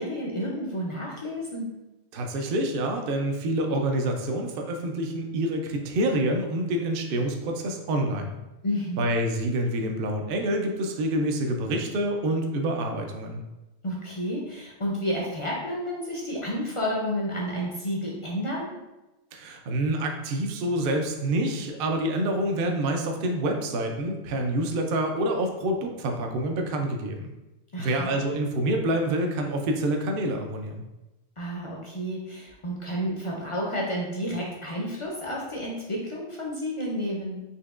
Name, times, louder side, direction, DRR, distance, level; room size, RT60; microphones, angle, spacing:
voice 1, 0.0-1.7 8.6-9.1 13.8-18.8 27.7-28.1 31.4-37.4, equal, 45° left, -3 dB, 0.4 m, -31 dB
voice 2, 2.1-8.3 9.0-13.4 19.3-27.3 27.8-30.8, right 1 dB, 60° right, 3 dB, 0.6 m, -27 dB
4.2 x 2.9 x 2.4 m, 1.0 s
omnidirectional pair, 1.3 m